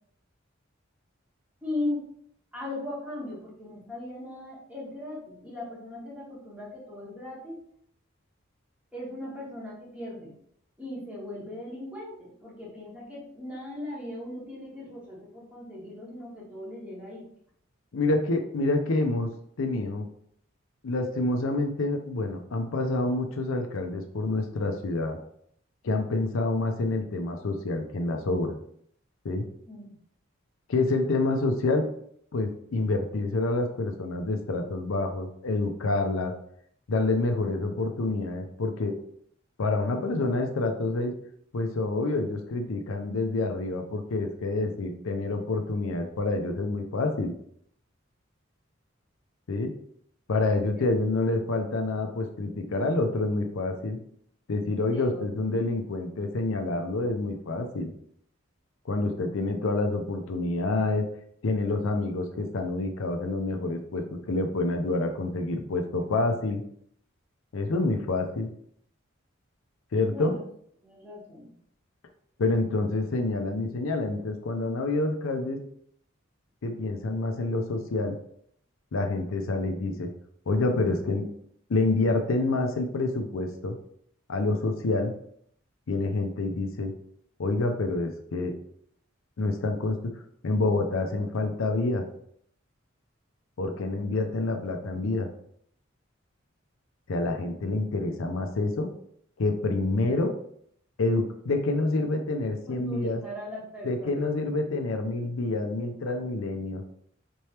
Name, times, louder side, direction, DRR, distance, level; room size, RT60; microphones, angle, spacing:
voice 1, 1.6-2.1 2.5-7.6 8.9-10.3 10.8-17.2 29.7-30.0 50.7-50.8 54.9-55.3 70.1-70.4 70.8-71.5 102.7-104.3, left 1 dB, 5° right, -6 dB, 1.3 m, -38 dB
voice 2, 17.9-19.3 19.6-20.1 20.8-25.2 25.8-28.6 29.2-29.4 30.7-31.9 32.3-36.3 36.9-38.9 39.6-41.1 41.5-47.3 49.5-49.7 50.3-54.0 54.5-57.9 58.9-61.0 61.4-66.6 67.5-68.5 69.9-70.3 72.4-75.6 76.6-78.2 78.9-80.1 80.5-81.3 81.7-83.8 84.3-85.1 85.9-86.9 87.4-88.5 89.4-90.0 90.4-92.0 93.6-95.3 97.1-98.9 99.4-100.3 101.0-103.2 103.8-106.8, left 2 dB, 85° left, 5 dB, 0.5 m, -27 dB
4.4 x 3.3 x 2.9 m, 0.66 s
head